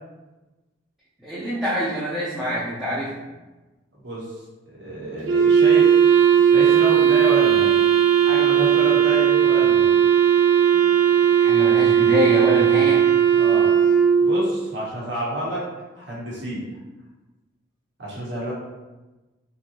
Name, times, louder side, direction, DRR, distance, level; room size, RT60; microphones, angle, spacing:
voice 1, 1.2-3.2 11.4-13.0, equal, ahead, -11 dB, 0.5 m, -25 dB
voice 2, 4.7-5.9 6.5-7.8 8.2-9.9 13.4-13.7 14.2-15.6 16.0-16.8 18.0-18.5, equal, 60° right, -6 dB, 1.2 m, -29 dB
Wind instrument woodwind instrument, 5.3-14.5, right 8 dB, 80° right, 0.5 m, -17 dB
3.7 x 2.7 x 2.9 m, 1.1 s
head